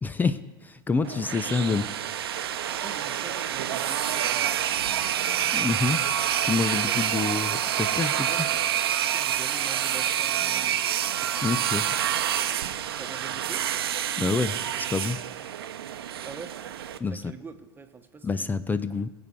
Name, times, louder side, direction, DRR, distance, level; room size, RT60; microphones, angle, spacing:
voice 1, 0.0-1.9 5.5-6.0 6.4-8.5 11.4-11.9 14.2-15.2 17.0-17.3 18.2-19.1, left 4 dB, 15° left, 14 dB, 0.6 m, -27 dB
sound 1, 1.0-17.0, right 10 dB, 65° right, 0.9 m, -27 dB
voice 2, 2.6-4.5 6.8-7.1 8.2-8.6 9.1-10.9 13.0-13.7 16.2-16.5 17.1-18.9, right 5 dB, 15° right, 7 dB, 1.3 m, -44 dB
22.0 x 8.2 x 4.7 m, 1.2 s
figure-of-eight pair, 85°, 14 cm